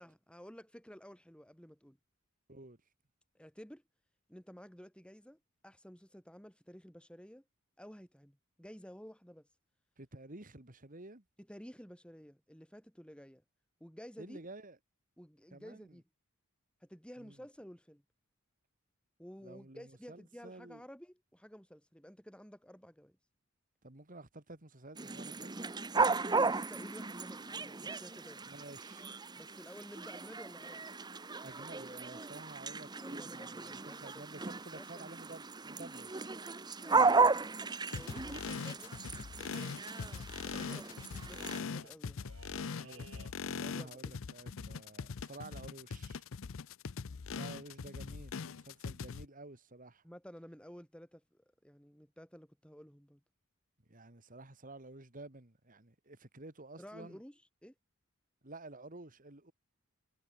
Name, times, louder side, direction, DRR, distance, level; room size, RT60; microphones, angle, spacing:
voice 1, 0.0-2.0 3.3-3.8 4.3-7.4 7.8-9.5 11.4-13.4 13.8-14.4 15.2-16.0 16.8-18.0 19.2-23.2 26.4-28.4 29.3-30.8 33.0-34.2 34.7-35.1 36.8-38.9 39.4-40.0 40.4-40.9 41.2-42.3 43.7-44.1 50.0-53.2 56.8-57.7, equal, 5° left, 7.4 m, -53 dB
voice 2, 10.0-11.2 14.2-14.8 15.5-16.0 17.2-17.4 19.4-20.8 23.8-25.7 28.4-29.1 31.4-36.3 42.8-46.3 47.3-50.0 53.9-57.2 58.4-59.5, right 2 dB, 40° right, 2.5 m, -51 dB
sound 1, 25.0-41.6, right 4 dB, 20° right, 0.9 m, -35 dB
sound 2, 33.3-35.6 35.9-36.1 36.4-36.9 37.2-37.3 37.4-43.8 44.1-44.3, right 4 dB, 65° right, 6.7 m, -63 dB
sound 3, 37.9-49.3, left 5 dB, 65° left, 0.6 m, -42 dB
head